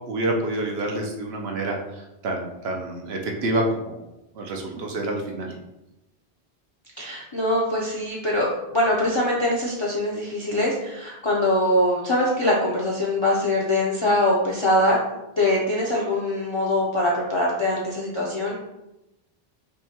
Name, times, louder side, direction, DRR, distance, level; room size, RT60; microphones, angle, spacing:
voice 1, 0.1-1.8 2.2-4.0 4.4-5.5, right 1 dB, 75° right, 1 dB, 0.9 m, -27 dB
voice 2, 7.0-15.0 15.4-18.6, left 1 dB, 35° left, -4 dB, 0.5 m, -23 dB
5.2 x 2.1 x 2.8 m, 0.92 s
omnidirectional pair, 1.1 m